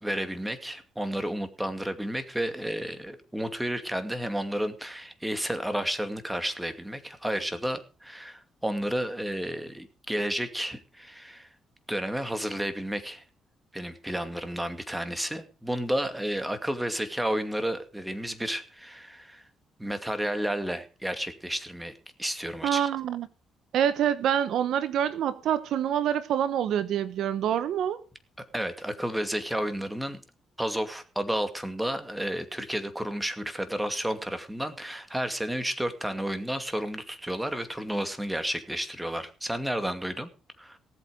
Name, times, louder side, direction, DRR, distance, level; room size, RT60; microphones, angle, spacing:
voice 1, 0.0-11.5 11.9-13.2 13.7-19.4 19.8-21.9 22.2-22.9 28.5-30.2 30.6-40.3 40.6-40.8, equal, 5° right, 2.4 m, -31 dB
voice 2, 22.6-23.3 23.7-28.0, right 9 dB, 75° right, 1.0 m, -26 dB
18.0 x 8.1 x 5.2 m
cardioid pair, 90°, 0 cm